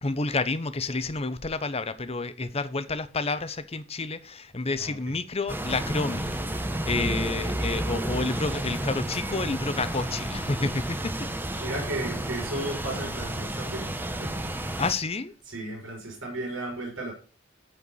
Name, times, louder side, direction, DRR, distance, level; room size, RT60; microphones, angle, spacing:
voice 1, 0.0-11.3 14.8-15.3, left 3 dB, 30° left, 0.8 m, -30 dB
voice 2, 4.8-5.1 11.6-14.3 15.5-17.1, right 1 dB, 75° right, 5.1 m, -35 dB
sound 1, 5.5-14.9, right 1 dB, 10° right, 0.9 m, -31 dB
14.0 x 4.7 x 6.8 m
head